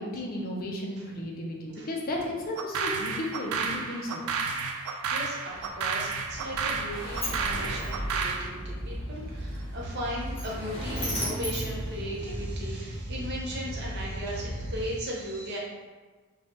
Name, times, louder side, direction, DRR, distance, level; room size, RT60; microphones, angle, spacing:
voice 1, 0.0-4.3, left 1 dB, 40° left, -1 dB, 0.4 m, -34 dB
sound 1, 2.6-8.5, right 5 dB, 80° right, 0.3 m, -31 dB
voice 2, 5.1-15.6, equal, 50° right, -4 dB, 0.6 m, -37 dB
sound 2, 5.5-14.9, equal, 75° left, 0.8 m, -37 dB
Sliding door, 6.3-12.7, equal, 25° left, 1.0 m, -38 dB
3.1 x 2.2 x 2.8 m, 1.3 s
head